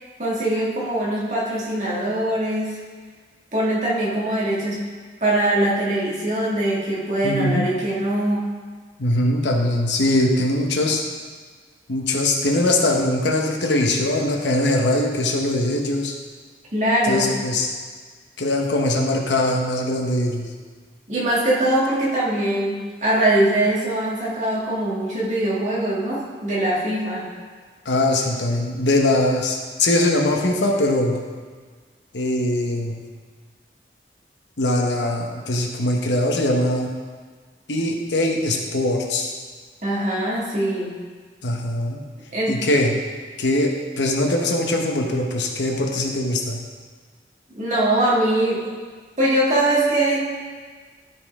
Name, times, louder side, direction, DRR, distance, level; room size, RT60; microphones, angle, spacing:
voice 1, 0.2-2.8 3.5-4.8 5.2-8.5 16.7-17.3 21.1-27.3 39.8-41.0 42.3-42.6 47.6-48.6 49.2-50.2, right 1 dB, 40° right, -7 dB, 2.1 m, -22 dB
voice 2, 7.2-7.7 9.0-11.0 11.9-16.1 17.0-17.7 18.4-20.5 27.8-31.2 32.1-33.0 34.6-36.9 37.7-39.3 41.4-42.0 42.5-43.0 43.4-46.6, left 1 dB, 85° left, 2 dB, 1.0 m, -21 dB
12.0 x 5.6 x 3.6 m, 1.5 s
head